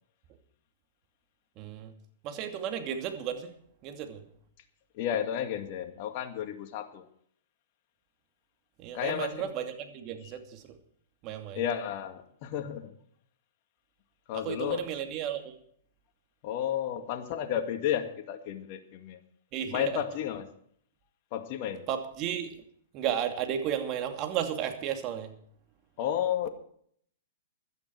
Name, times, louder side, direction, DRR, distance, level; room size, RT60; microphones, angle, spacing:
voice 1, 1.6-1.9 2.2-3.5 3.8-4.2 8.8-10.8 11.2-11.6 14.3-15.5 19.5-19.9 21.9-22.6 22.9-25.3, right 9 dB, 40° right, 5 dB, 2.5 m, -33 dB
voice 2, 4.9-7.1 8.9-9.5 11.5-12.9 14.3-14.9 16.4-19.2 19.7-20.5 21.3-21.8 26.0-26.5, left 10 dB, 50° left, 6 dB, 2.1 m, -32 dB
16.5 x 12.0 x 4.6 m, 0.63 s
hypercardioid pair, 125°, 0 cm